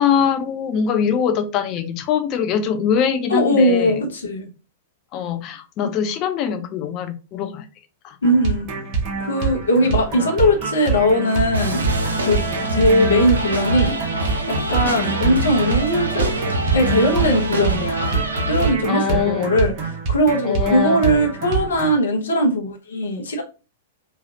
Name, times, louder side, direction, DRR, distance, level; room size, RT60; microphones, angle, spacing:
voice 1, 0.0-4.0 5.1-7.6 8.0-8.1 18.9-19.5 20.4-21.0, left 8 dB, 35° left, 7 dB, 0.4 m, -22 dB
voice 2, 3.3-4.4 5.8-5.9 8.2-8.7 9.2-11.8 12.3-12.4 12.7-14.0 14.5-16.3 16.7-23.4, equal, 70° left, 1 dB, 0.9 m, -19 dB
sound 1, 8.2-21.9, right 5 dB, 35° right, 1.0 m, -26 dB
sound 2, 11.5-18.7, right 1 dB, 75° right, 0.6 m, -25 dB
3.2 x 2.3 x 2.7 m, 0.33 s
figure-of-eight pair, 100°, 0 cm